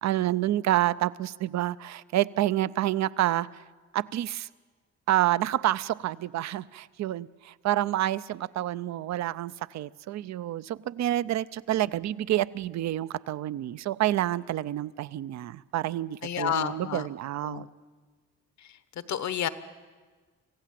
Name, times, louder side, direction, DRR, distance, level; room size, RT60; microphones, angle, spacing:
voice 1, 0.0-3.5 3.9-4.5 5.1-17.7, right 13 dB, 65° right, 18 dB, 0.6 m, -28 dB
voice 2, 16.2-17.1 17.4-17.7 18.6-18.7 19.1-19.5, left 9 dB, 65° left, 13 dB, 1.1 m, -30 dB
26.0 x 15.5 x 7.6 m, 1.4 s
cardioid pair, 90°, 30 cm